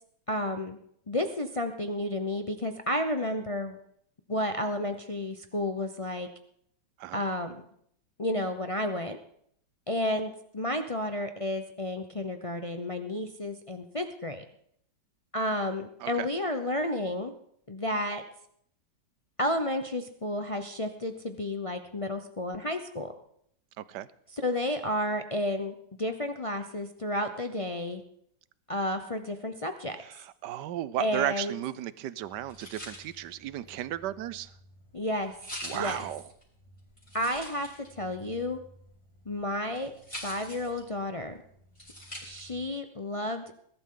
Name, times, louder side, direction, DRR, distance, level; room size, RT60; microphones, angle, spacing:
voice 1, 0.3-0.8 1.1-3.8 4.3-6.3 7.1-7.6 8.2-9.2 9.9-14.4 15.3-17.3 17.7-18.2 19.4-23.1 24.3-28.0 28.7-30.0 31.0-31.5 34.9-35.3 35.7-36.0 37.1-38.6 39.3-39.9 40.2-41.4 42.2-43.5, left 1 dB, 50° left, 7 dB, 0.4 m, -31 dB
voice 2, 23.8-24.1 30.0-34.5 35.6-36.2, right 13 dB, 70° right, 17 dB, 1.2 m, -34 dB
sound 1, 32.2-42.7, equal, 15° left, 5.8 m, -46 dB
21.0 x 12.0 x 3.8 m, 0.68 s
omnidirectional pair, 2.0 m